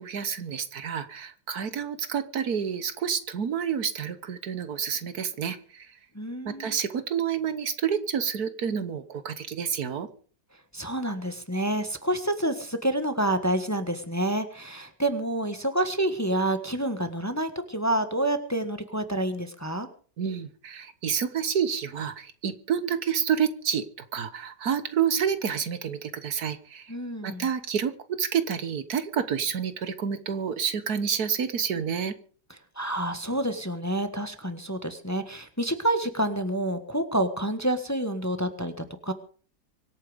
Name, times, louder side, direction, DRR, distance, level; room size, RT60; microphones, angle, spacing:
voice 1, 0.0-5.9 6.4-10.1 20.2-23.8 24.1-26.9 27.2-32.1, right 7 dB, 65° right, 12 dB, 1.6 m, -29 dB
voice 2, 6.1-6.8 10.7-19.9 26.9-27.5 32.7-39.1, right 1 dB, 10° left, 8 dB, 1.4 m, -28 dB
25.0 x 8.9 x 5.1 m, 0.43 s
omnidirectional pair, 1.8 m